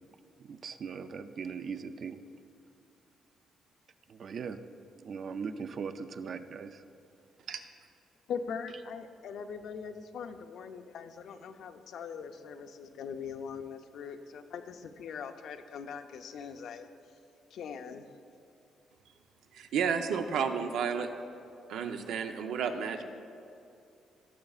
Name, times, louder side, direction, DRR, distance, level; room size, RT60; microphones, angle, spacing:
voice 1, 0.4-2.2 4.1-4.6 5.0-6.8, right 6 dB, 45° right, 10 dB, 0.4 m, -39 dB
voice 2, 8.3-16.9 17.5-18.1, left 6 dB, 65° left, 8 dB, 0.5 m, -41 dB
voice 3, 19.5-21.1 21.7-23.0, right 6 dB, 85° right, 6 dB, 0.7 m, -31 dB
17.0 x 6.7 x 2.4 m, 2.7 s
cardioid pair, 155°, 0 cm